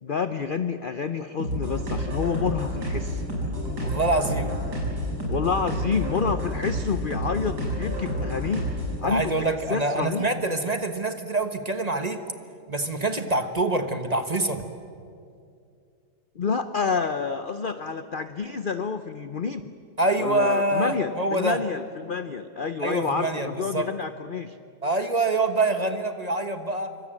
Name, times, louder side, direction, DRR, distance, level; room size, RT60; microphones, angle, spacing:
voice 1, 0.0-3.2 5.3-8.7 9.0-10.3 16.4-19.7 20.2-24.6, left 5 dB, 60° left, 11 dB, 0.5 m, -28 dB
sound 1, 1.4-9.0, equal, 60° right, 6.4 m, -29 dB
voice 2, 3.8-4.6 9.0-12.2 12.7-14.6 20.0-21.6 22.8-23.9 24.8-26.9, right 2 dB, 25° right, 8 dB, 1.2 m, -25 dB
26.5 x 25.0 x 7.7 m, 2.4 s
omnidirectional pair, 2.0 m